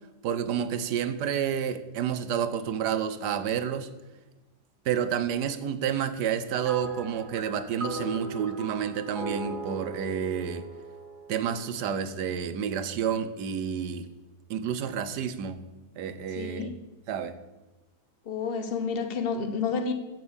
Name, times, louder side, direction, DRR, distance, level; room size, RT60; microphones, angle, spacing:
voice 1, 0.2-3.9 4.8-10.6 11.3-14.1 14.5-15.6 16.0-16.7 17.1-17.4, right 8 dB, 75° right, 12 dB, 1.4 m, -29 dB
sound 1, 6.6-12.2, right 2 dB, 35° right, 1.0 m, -38 dB
voice 2, 16.3-16.7 18.2-19.9, left 5 dB, 35° left, 7 dB, 1.3 m, -30 dB
15.0 x 6.2 x 7.1 m, 1.1 s
omnidirectional pair, 1.8 m